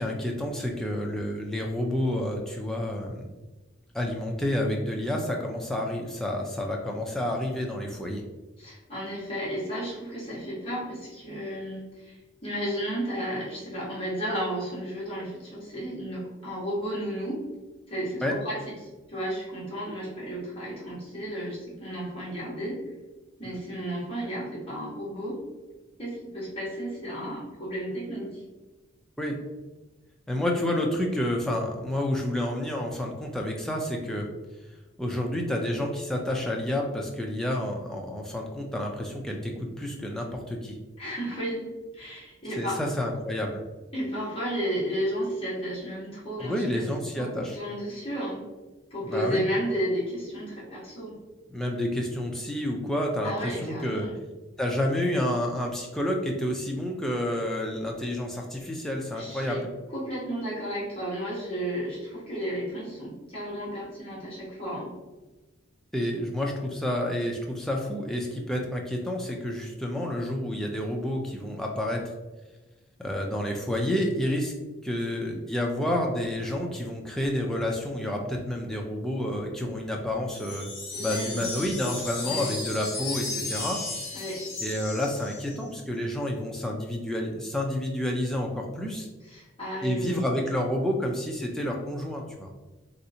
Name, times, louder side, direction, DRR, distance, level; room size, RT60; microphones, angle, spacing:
voice 1, 0.0-3.3 3.9-8.2 18.2-18.3 29.2-29.4 30.3-34.3 35.0-40.8 42.6-43.6 46.4-47.6 49.0-49.4 51.5-54.1 54.6-59.7 65.9-72.0 73.0-74.5 74.8-80.7 81.0-83.8 84.6-89.1 89.8-92.5, left 1 dB, ahead, -1 dB, 0.3 m, -29 dB
voice 2, 8.6-17.5 17.9-18.7 19.1-22.9 23.4-25.5 26.0-28.4 41.0-41.7 41.9-42.8 43.9-48.4 48.9-51.2 53.2-54.1 59.1-59.6 59.9-64.9 80.9-81.4 82.2-82.5 84.1-84.5 89.2-90.2, equal, 30° left, -7 dB, 1.2 m, -33 dB
sound 1, 80.3-85.7, left 3 dB, 55° left, 1.4 m, -35 dB
3.2 x 2.7 x 2.7 m, 1.1 s
head